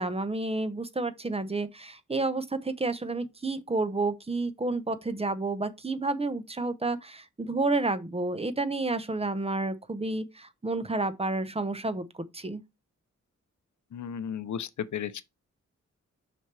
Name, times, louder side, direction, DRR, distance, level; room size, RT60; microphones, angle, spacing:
voice 1, 0.0-12.0 12.3-12.6, right 2 dB, 20° right, 0.8 m, -30 dB
voice 2, 13.9-15.2, left 8 dB, 85° left, 0.7 m, -34 dB
6.3 x 5.9 x 3.3 m
wide cardioid pair, 155°, 29 cm